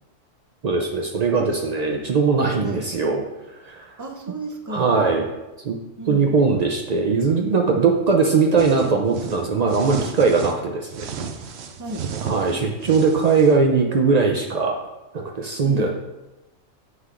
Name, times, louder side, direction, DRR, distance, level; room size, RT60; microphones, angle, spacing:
voice 1, 0.6-3.2 3.5-3.9 4.7-5.3 5.6-5.8 6.1-11.1 12.2-14.8 15.1-15.9, right 4 dB, 85° right, 1 dB, 0.3 m, -20 dB
voice 2, 4.0-5.1 6.0-6.3 11.8-12.1 15.6-15.9, right 1 dB, 20° right, 2 dB, 0.4 m, -33 dB
sound 1, 8.6-10.6 10.9-13.6, right 6 dB, 65° right, 0.8 m, -33 dB
7.6 x 6.2 x 2.5 m, 1.0 s
omnidirectional pair, 1.4 m